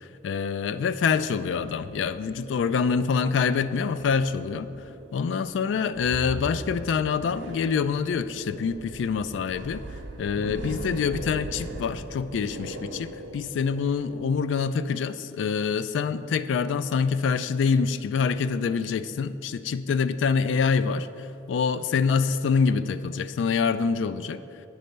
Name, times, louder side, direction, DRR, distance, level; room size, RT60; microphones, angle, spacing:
voice 1, 0.2-4.7 5.1-9.8 10.2-24.4, left 5 dB, 90° left, 13 dB, 0.3 m, -26 dB
sound 1, 1.5-14.4, right 1 dB, 85° right, 0.6 m, -40 dB
9.1 x 3.2 x 6.5 m, 2.9 s
head